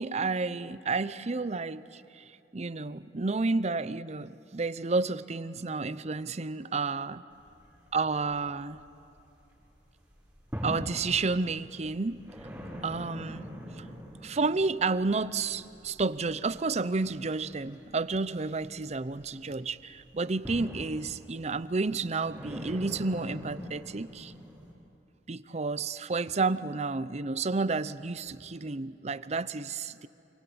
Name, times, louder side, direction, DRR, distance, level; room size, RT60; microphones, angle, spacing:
voice 1, 0.0-2.2 2.5-7.2 7.9-8.8 10.6-12.2 12.8-13.5 13.8-13.9 14.2-24.3 25.3-30.1, right 3 dB, 40° right, 16 dB, 0.7 m, -31 dB
sound 1, 7.3-9.5 9.8-24.7, equal, 10° right, 6.7 m, -44 dB
27.0 x 24.5 x 8.7 m, 2.9 s
head